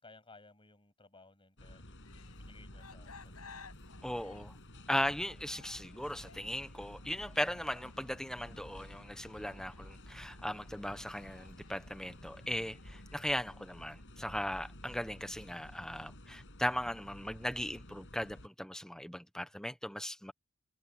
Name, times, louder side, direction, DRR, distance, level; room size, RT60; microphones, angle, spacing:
voice 1, 0.0-2.1 2.4-3.4, left 3 dB, 25° left, 7.4 m, -59 dB
sound 1, 1.6-18.5, left 1 dB, 60° left, 6.5 m, -52 dB
sound 2, 2.0-13.4, left 5 dB, 90° left, 6.4 m, -59 dB
voice 2, 4.0-4.6 4.9-20.3, equal, 5° left, 1.1 m, -38 dB
head